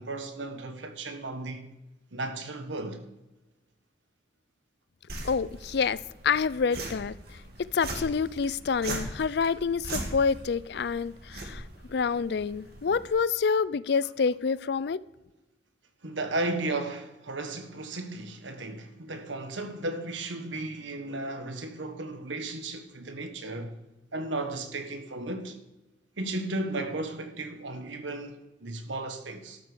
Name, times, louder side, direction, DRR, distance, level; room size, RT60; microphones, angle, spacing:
voice 1, 0.0-1.7 2.1-3.0 16.0-23.8 24.1-25.6 26.2-29.6, right 2 dB, 90° right, 1.5 m, -35 dB
sound 1, 5.1-13.1, right 2 dB, 60° right, 2.2 m, -40 dB
voice 2, 5.2-6.0 6.2-7.1 7.7-11.6 11.9-15.0, left 5 dB, 60° left, 0.4 m, -27 dB
12.5 x 8.4 x 6.2 m
head